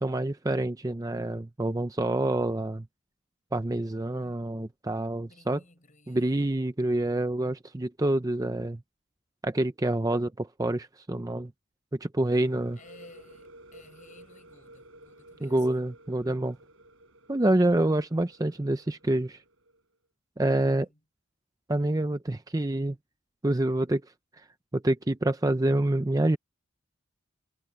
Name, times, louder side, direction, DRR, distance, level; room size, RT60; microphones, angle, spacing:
voice 1, 0.0-2.8 3.5-5.6 6.1-8.8 9.4-11.5 11.9-12.8 15.4-16.6 17.3-19.4 20.4-20.9 21.7-23.0 23.4-24.0 24.7-26.4, right 1 dB, 15° right, 0.5 m, -27 dB
voice 2, 2.2-2.7 4.2-4.7 5.2-6.6 12.7-15.8 17.4-18.0 20.5-21.0, left 2 dB, 35° left, 5.0 m, -56 dB
sound 1, 12.2-19.8, right 1 dB, 65° right, 5.9 m, -54 dB
head